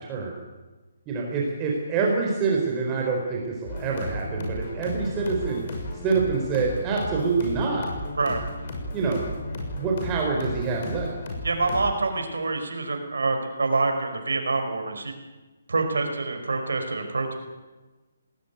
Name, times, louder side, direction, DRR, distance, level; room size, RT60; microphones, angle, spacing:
voice 1, 1.1-5.7 6.0-7.9 8.9-9.3 9.8-11.1, right 4 dB, 20° right, -1 dB, 4.1 m, -26 dB
sound 1, 3.7-11.9, left 1 dB, 50° left, 6.6 m, -34 dB
voice 2, 11.4-15.1 15.7-17.4, right 3 dB, 75° right, 5 dB, 5.2 m, -26 dB
20.0 x 18.5 x 9.3 m, 1.2 s
figure-of-eight pair, 145°, 0 cm